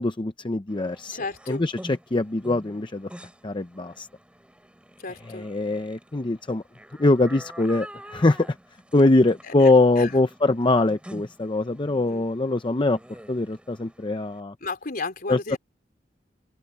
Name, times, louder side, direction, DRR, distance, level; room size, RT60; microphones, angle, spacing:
voice 1, 0.0-1.2 1.5-3.1 3.4-4.1 5.3-6.6 7.0-8.5 8.9-13.0 13.3-14.5 15.3-15.6, left 2 dB, 25° left, 0.7 m, -22 dB
sound 1, 0.7-14.4, equal, 5° right, 6.3 m, -47 dB
voice 2, 1.1-1.7 5.0-5.5 9.4-10.2 11.9-12.3 14.6-15.6, left 3 dB, 50° left, 3.9 m, -34 dB
open air
head